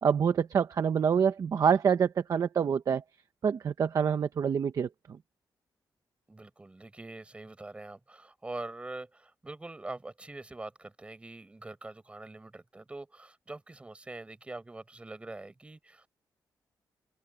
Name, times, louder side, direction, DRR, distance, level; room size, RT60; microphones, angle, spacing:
voice 1, 0.0-3.0 3.4-4.9, right 7 dB, 50° right, 0.9 m, -26 dB
voice 2, 6.3-16.1, right 2 dB, 15° right, 6.5 m, -44 dB
wide cardioid pair, 170°, 8 cm